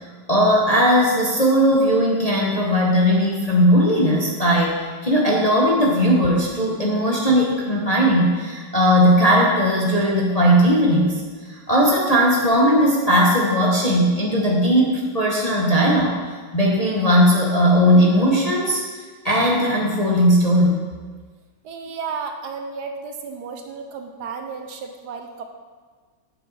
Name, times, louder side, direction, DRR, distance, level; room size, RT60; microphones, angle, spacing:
voice 1, 0.3-4.7 5.0-16.2 16.5-18.8 19.2-20.8, equal, 30° left, -3 dB, 0.8 m, -18 dB
voice 2, 21.6-25.4, right 5 dB, 70° right, 5 dB, 1.2 m, -33 dB
9.0 x 7.3 x 4.1 m, 1.4 s
omnidirectional pair, 1.9 m